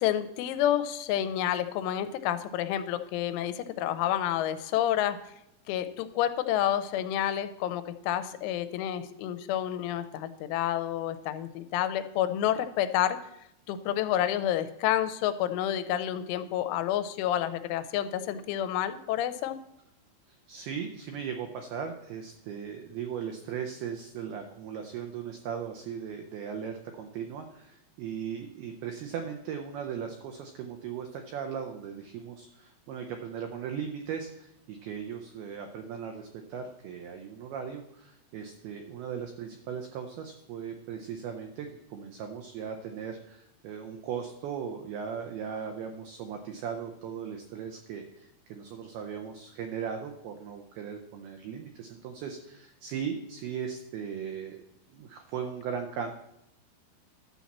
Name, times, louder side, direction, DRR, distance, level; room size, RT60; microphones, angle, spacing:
voice 1, 0.0-5.2 5.7-13.2 13.7-19.6, left 11 dB, 90° left, 11 dB, 3.1 m, -29 dB
voice 2, 20.5-54.6 54.9-56.1, right 7 dB, 85° right, 5 dB, 2.2 m, -38 dB
12.0 x 4.2 x 7.2 m, 0.82 s
omnidirectional pair, 5.4 m